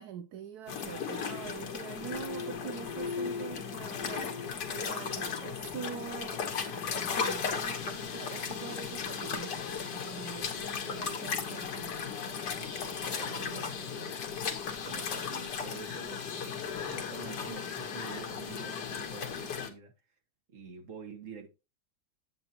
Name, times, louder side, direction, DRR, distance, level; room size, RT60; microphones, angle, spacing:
voice 1, 0.0-12.0, right 8 dB, 70° right, 1.1 m, -44 dB
sound 1, 0.7-19.7, left 6 dB, 65° left, 1.8 m, -36 dB
voice 2, 12.6-14.5 14.8-19.9 20.5-21.5, right 5 dB, 45° right, 1.9 m, -47 dB
7.9 x 7.7 x 2.9 m
omnidirectional pair, 2.0 m